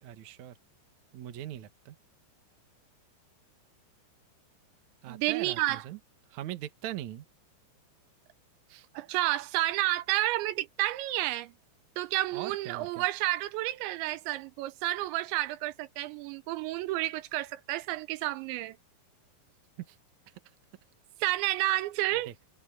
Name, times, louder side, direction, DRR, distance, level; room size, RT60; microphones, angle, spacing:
voice 1, 0.0-0.6 1.1-2.0 5.0-6.0 6.3-7.3 8.7-8.9 12.3-13.1 19.9-20.0 22.3-22.4, right 12 dB, 60° right, 2.0 m, -41 dB
voice 2, 5.1-5.8 8.9-11.5 12.0-18.8 21.2-22.3, right 16 dB, 80° right, 2.9 m, -30 dB
omnidirectional pair, 5.3 m